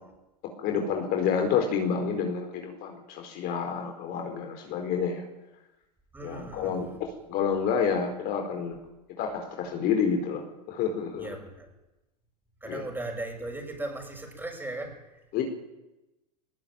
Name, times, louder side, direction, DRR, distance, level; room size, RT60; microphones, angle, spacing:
voice 1, 0.6-5.2 6.2-8.8 9.2-10.4 10.7-11.3 12.7-12.8 15.3-15.4, left 6 dB, 45° left, 4 dB, 4.6 m, -29 dB
voice 2, 6.1-6.9 11.2-11.7 12.6-15.0, right 2 dB, 10° right, 3 dB, 7.4 m, -37 dB
20.0 x 20.0 x 9.1 m, 1.0 s
hypercardioid pair, 90°, 21 cm